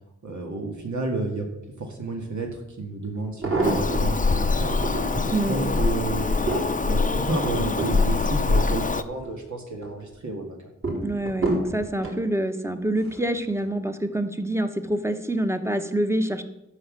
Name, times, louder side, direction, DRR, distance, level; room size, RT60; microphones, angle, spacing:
voice 1, 0.2-1.5 1.8-4.9 5.5-6.3 6.8-10.6, right 3 dB, 75° right, 0 dB, 2.0 m, -31 dB
sound 1, 2.4-2.5 3.2-4.2 4.7-5.4 5.9-9.3 9.7-10.2 10.8-12.2 13.0-13.3 13.6-13.7, right 2 dB, 45° right, 3.9 m, -29 dB
Bird vocalization bird call bird song, 3.6-9.0, left 3 dB, 25° left, 0.6 m, -24 dB
voice 2, 11.0-16.4, right 1 dB, 10° right, 7 dB, 1.0 m, -26 dB
12.5 x 5.7 x 7.6 m, 0.90 s
wide cardioid pair, 90°, 29 cm